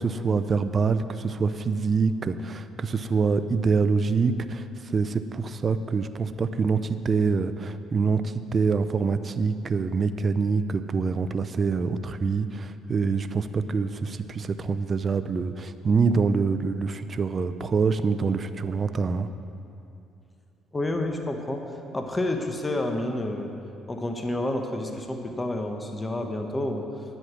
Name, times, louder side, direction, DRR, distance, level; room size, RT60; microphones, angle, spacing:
voice 1, 0.0-19.3, right 5 dB, 35° right, 11 dB, 0.5 m, -25 dB
voice 2, 20.7-21.6 21.9-23.5 23.9-26.8, left 1 dB, 15° left, 4 dB, 1.1 m, -29 dB
10.0 x 8.0 x 7.5 m, 2.7 s
cardioid pair, 105°, 0 cm